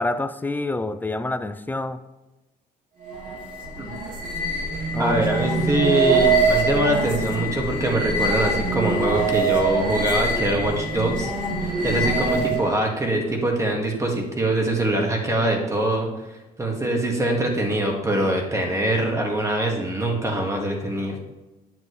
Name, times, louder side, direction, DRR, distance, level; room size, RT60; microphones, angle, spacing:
voice 1, 0.0-2.0 4.9-5.3, left 2 dB, 10° left, 11 dB, 0.5 m, -27 dB
sound 1, 3.0-12.8, right 3 dB, 50° right, 2.8 m, -24 dB
voice 2, 5.0-11.3 11.8-16.1 16.6-21.2, right 1 dB, 20° right, 1 dB, 2.0 m, -23 dB
9.2 x 7.7 x 3.2 m, 1.1 s
cardioid pair, 110°, 17 cm